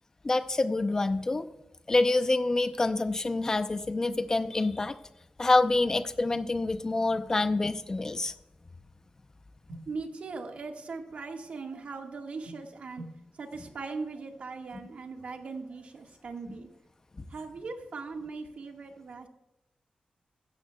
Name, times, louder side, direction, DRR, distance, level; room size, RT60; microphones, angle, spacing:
voice 1, 0.2-1.5 1.9-5.0 5.4-8.3 17.2-17.3, left 2 dB, 25° left, 10 dB, 0.6 m, -26 dB
voice 2, 9.7-13.1 13.3-16.7 17.3-19.3, right 4 dB, 60° right, 3 dB, 1.6 m, -39 dB
15.5 x 13.0 x 2.3 m, 0.93 s
wide cardioid pair, 175°, 3 cm